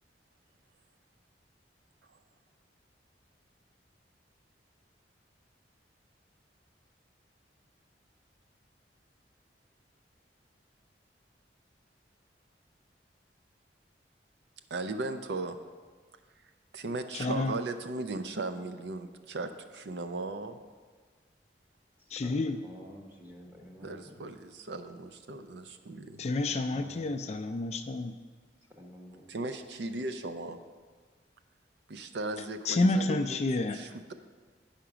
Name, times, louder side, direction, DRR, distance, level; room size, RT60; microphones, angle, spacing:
voice 1, 14.7-15.6 16.7-20.6 23.8-26.3 29.3-30.6 31.9-33.4 33.7-34.1, right 2 dB, 75° right, 8 dB, 0.5 m, -37 dB
voice 2, 17.1-17.6 22.1-22.6 26.2-28.2 32.7-33.8, left 2 dB, 35° left, 7 dB, 0.3 m, -29 dB
voice 3, 22.2-24.2 26.4-27.1 28.7-29.2, equal, 10° right, -1 dB, 1.1 m, -50 dB
9.5 x 5.8 x 5.0 m, 1.5 s
head